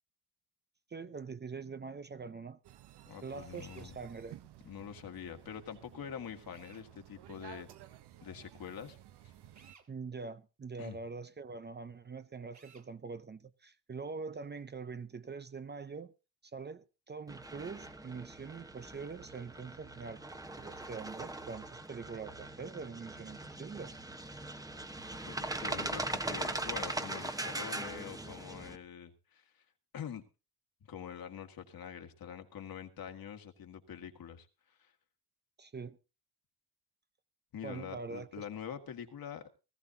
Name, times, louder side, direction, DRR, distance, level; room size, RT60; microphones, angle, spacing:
voice 1, 0.9-2.6 3.2-4.4 9.9-16.1 16.5-20.2 20.6-23.9 35.6-36.0 37.6-38.4, right 4 dB, 25° right, 0.6 m, -44 dB
sound 1, 2.6-9.7, right 13 dB, 85° right, 0.9 m, -55 dB
voice 2, 3.1-4.0 4.6-7.7 8.2-9.0 10.8-11.0 25.3-29.7 29.9-30.3 30.9-34.9 37.5-39.5, left 8 dB, 60° left, 1.9 m, -45 dB
Drill, 3.5-3.9 6.5-6.9 9.5-9.9 12.5-12.9, right 6 dB, 45° right, 2.4 m, -59 dB
sound 2, 17.3-28.8, right 2 dB, 10° right, 1.0 m, -40 dB
18.5 x 14.5 x 2.8 m
cardioid pair, 105°, 39 cm